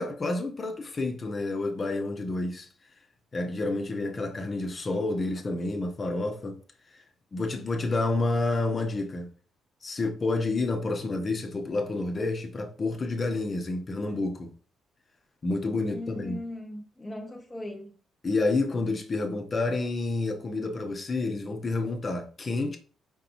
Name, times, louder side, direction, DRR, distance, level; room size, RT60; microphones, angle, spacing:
voice 1, 0.0-2.7 3.3-6.6 6.9-7.0 7.3-9.3 9.8-14.5 15.4-16.4 18.2-22.8, left 2 dB, 35° left, 0.9 m, -29 dB
voice 2, 15.8-17.9, left 1 dB, 15° left, 0.5 m, -39 dB
4.5 x 3.9 x 3.0 m
cardioid pair, 90°, 0 cm